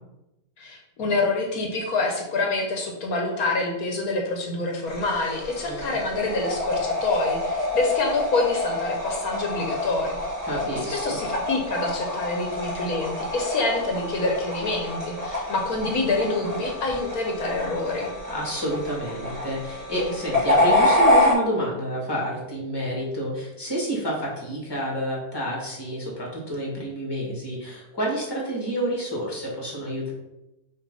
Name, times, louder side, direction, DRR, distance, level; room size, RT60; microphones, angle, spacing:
voice 1, 0.6-10.2 10.9-18.1, left 3 dB, 75° left, 1 dB, 1.4 m, -26 dB
sound 1, 4.9-21.3, left 1 dB, 25° right, 1.6 m, -27 dB
voice 2, 5.6-6.0 10.4-11.2 18.3-30.1, equal, 15° left, -4 dB, 2.0 m, -29 dB
6.0 x 3.2 x 5.5 m, 0.94 s
omnidirectional pair, 1.5 m